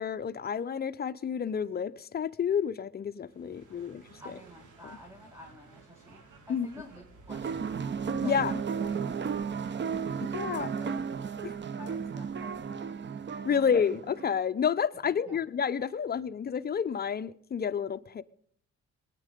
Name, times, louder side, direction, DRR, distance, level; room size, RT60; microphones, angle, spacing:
voice 1, 0.0-4.0 6.5-6.7 8.2-8.5 10.2-10.7 11.4-11.5 13.4-18.2, left 7 dB, 35° left, 0.6 m, -30 dB
sound 1, 3.2-8.3, right 3 dB, 80° right, 2.6 m, -55 dB
voice 2, 4.2-7.8 8.2-9.2 10.1-10.3 10.6-11.0 11.7-13.0 13.6-13.7 15.0-15.4, left 1 dB, 10° right, 1.9 m, -50 dB
sound 2, 7.3-14.4, right 6 dB, 40° right, 0.8 m, -34 dB
21.0 x 9.2 x 5.1 m
cardioid pair, 90°, 30 cm